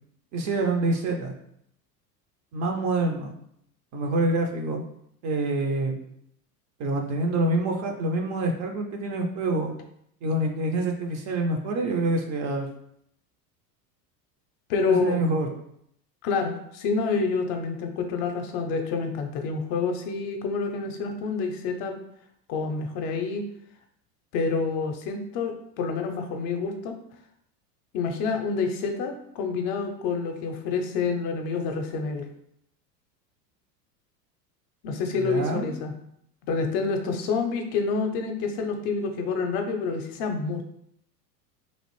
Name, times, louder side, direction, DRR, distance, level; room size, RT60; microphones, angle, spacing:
voice 1, 0.3-1.3 2.5-3.3 3.9-4.8 5.2-6.0 6.8-9.7 10.2-12.7 14.9-15.5 35.1-35.7, right 2 dB, 35° right, 3 dB, 0.5 m, -26 dB
voice 2, 14.7-15.2 16.2-22.0 22.5-23.4 24.3-26.9 27.9-32.3 34.8-35.9 36.5-40.6, left 4 dB, 50° left, 5 dB, 0.6 m, -28 dB
3.0 x 2.4 x 3.0 m, 0.73 s
hypercardioid pair, 90°, 50 cm